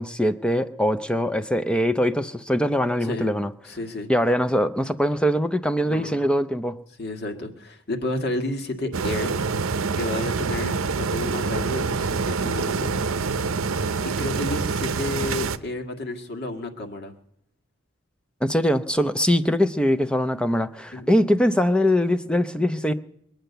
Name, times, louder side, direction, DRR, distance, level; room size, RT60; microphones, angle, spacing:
voice 1, 0.0-3.5 4.1-6.8 18.4-22.9, equal, 5° left, 11 dB, 0.5 m, -22 dB
voice 2, 3.0-3.3 3.6-4.1 5.8-6.2 7.0-9.3 9.9-13.0 14.0-17.1 20.9-21.1, left 2 dB, 50° left, 5 dB, 1.8 m, -31 dB
sound 1, 8.9-15.6, right 4 dB, 80° right, 0.7 m, -26 dB
23.0 x 9.0 x 6.8 m, 0.76 s
head